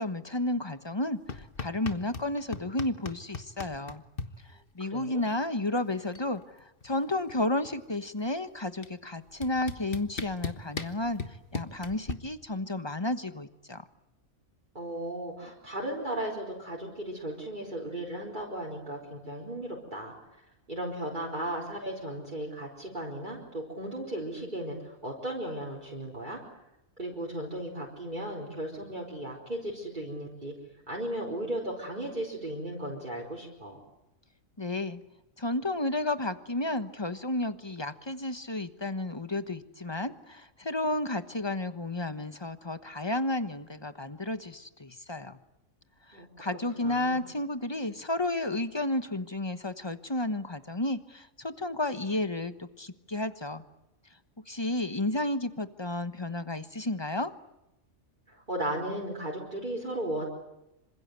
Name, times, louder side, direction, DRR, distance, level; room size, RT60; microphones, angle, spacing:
voice 1, 0.0-4.0 4.5-13.9 34.6-35.0 35.4-45.4 46.1-53.6 54.5-57.3, left 2 dB, 20° left, 10 dB, 1.2 m, -32 dB
sound 1, 1.3-2.3 2.5-4.3 5.6-5.7 5.9-6.3 6.6-8.0 8.8-8.9 9.4-12.1, left 4 dB, 45° left, 1.5 m, -37 dB
voice 2, 4.8-5.2 14.7-20.1 20.7-26.4 27.0-30.5 30.9-33.8 46.1-46.5 46.8-47.2 58.3-60.3, right 1 dB, 35° right, -1 dB, 4.6 m, -36 dB
27.0 x 26.0 x 8.1 m, 0.89 s
omnidirectional pair, 1.4 m